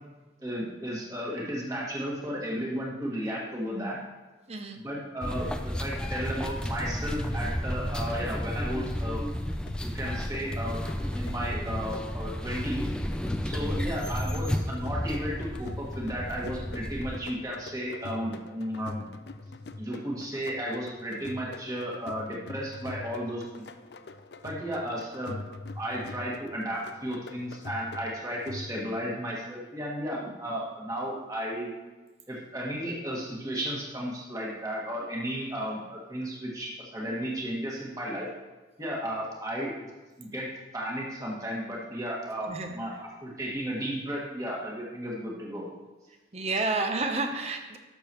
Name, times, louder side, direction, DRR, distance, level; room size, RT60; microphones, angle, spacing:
voice 1, 0.4-4.0 4.8-9.3 9.8-10.8 11.1-12.8 13.4-19.1 19.8-23.7 24.4-25.4 25.7-31.7 32.3-38.3 38.8-39.9 40.2-40.5 40.7-45.6, equal, 20° right, -4 dB, 1.7 m, -34 dB
voice 2, 4.5-4.8 13.6-13.8 42.5-42.8 46.3-47.8, right 3 dB, 35° right, 5 dB, 0.7 m, -30 dB
sound 1, 5.2-17.2, equal, 5° left, 0.4 m, -32 dB
sound 2, 9.4-29.0, left 3 dB, 65° left, 0.5 m, -43 dB
11.5 x 6.9 x 3.0 m, 1.2 s
head